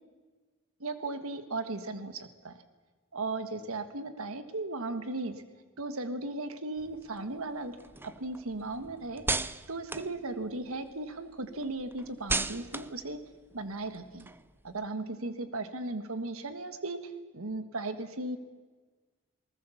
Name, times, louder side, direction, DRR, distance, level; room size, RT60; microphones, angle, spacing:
voice 1, 0.8-2.6 3.1-5.3 5.8-7.8 8.0-9.2 9.7-13.2 13.5-14.3 14.6-18.4, right 2 dB, 70° right, 9 dB, 1.6 m, -36 dB
sound 1, 6.8-10.9 11.3-14.8, right 3 dB, 10° right, 0.5 m, -38 dB
21.0 x 19.5 x 7.2 m, 1.4 s
head